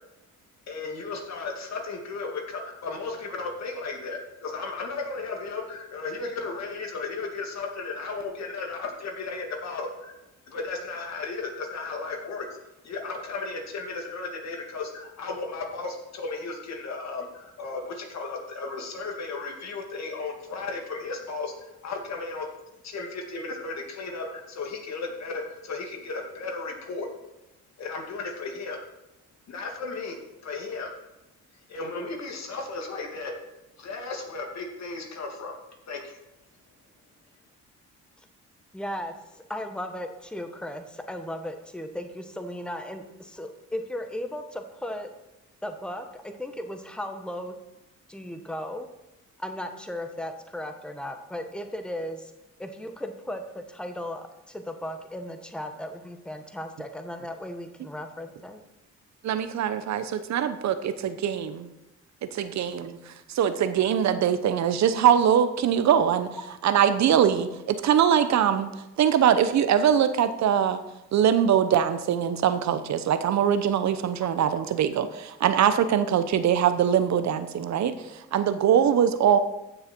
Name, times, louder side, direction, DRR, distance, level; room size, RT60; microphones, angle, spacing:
voice 1, 0.7-10.1 10.5-12.5 12.8-21.5 21.8-22.5 22.8-27.1 27.8-28.8 29.5-30.2 30.4-30.9 31.7-33.3 33.8-35.5 35.9-36.2, left 3 dB, 60° left, 2 dB, 2.4 m, -35 dB
voice 2, 38.7-45.1 45.6-47.5 48.1-48.9 49.4-52.3 52.6-58.6, left 1 dB, 5° left, 6 dB, 1.2 m, -36 dB
voice 3, 59.2-61.7 62.3-66.3 66.6-70.8 71.1-79.4, right 9 dB, 65° right, 11 dB, 0.9 m, -22 dB
15.0 x 6.5 x 4.5 m, 0.95 s
cardioid pair, 90°, 30 cm